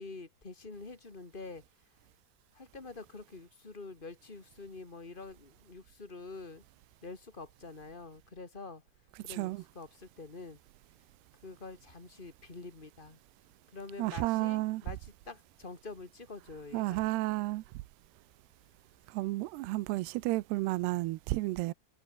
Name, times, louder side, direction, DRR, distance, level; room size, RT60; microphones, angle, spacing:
voice 1, 0.0-1.6 2.5-6.6 7.0-8.8 9.2-10.6 11.4-13.2 13.7-17.1, left 3 dB, 20° left, 1.3 m, -46 dB
voice 2, 9.3-9.6 14.0-14.8 16.7-17.6 19.1-21.7, right 19 dB, 75° right, 2.6 m, -32 dB
omnidirectional pair, 5.2 m